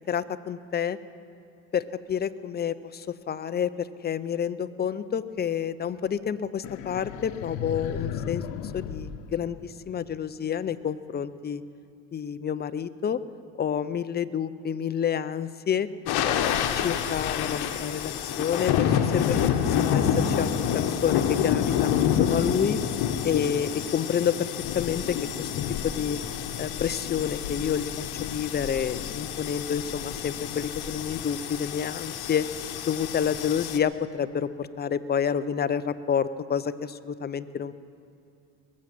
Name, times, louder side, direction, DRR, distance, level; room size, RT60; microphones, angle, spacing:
voice 1, 0.1-1.0 1.7-8.4 8.7-11.6 12.1-13.2 13.6-15.9 16.2-19.4 19.7-22.8 23.2-24.5 24.7-25.5 25.8-26.2 26.6-32.4 32.9-37.7, left 8 dB, 25° left, 14 dB, 0.5 m, -29 dB
sound 1, 6.6-10.1, left 8 dB, 80° left, 0.9 m, -36 dB
sound 2, 16.1-33.8, left 8 dB, 60° left, 1.1 m, -28 dB
21.0 x 7.5 x 7.7 m, 2.6 s
supercardioid pair, 85°, 42 cm